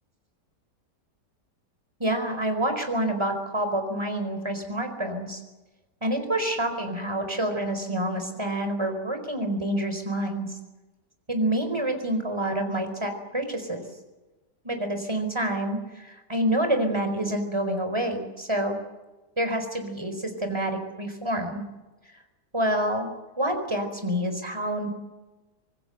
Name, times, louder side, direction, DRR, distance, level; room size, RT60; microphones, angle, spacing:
voice 1, 2.0-5.4 6.0-10.5 11.3-13.8 14.6-18.8 19.4-21.6 22.5-23.1 23.4-24.9, right 1 dB, 15° right, 6 dB, 4.5 m, -27 dB
26.0 x 19.5 x 8.0 m, 1.1 s
omnidirectional pair, 1.8 m